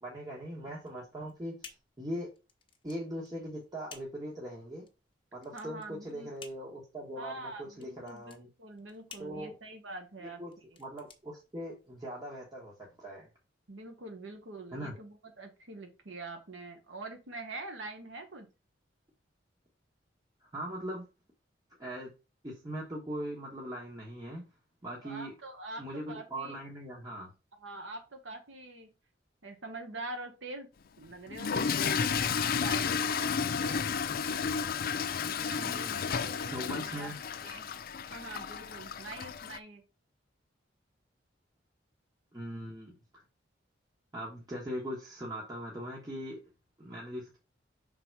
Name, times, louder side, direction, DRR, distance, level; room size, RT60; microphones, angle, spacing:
voice 1, 0.0-2.3 2.8-4.8 5.3-8.5 9.2-9.5 10.2-10.5 10.8-13.3 14.7-15.0 20.5-21.1 21.8-22.1 22.4-24.4 24.8-25.3 25.8-27.3 35.5-36.2 36.5-37.2 42.3-43.2 44.1-46.4 46.8-47.4, equal, 20° right, -4 dB, 1.3 m, -40 dB
sound 1, 0.8-12.1, left 6 dB, 30° left, 0.9 m, -55 dB
voice 2, 5.5-6.3 7.2-10.4 13.7-18.5 25.0-26.6 27.6-28.9 29.4-30.7 31.0-33.9 35.2-37.1 37.4-37.7 38.1-39.8, right 2 dB, 85° right, 5 dB, 1.2 m, -45 dB
Toilet flush / Fill (with liquid), 31.3-39.6, left 6 dB, 50° left, 0.5 m, -32 dB
5.6 x 3.9 x 4.6 m, 0.29 s
head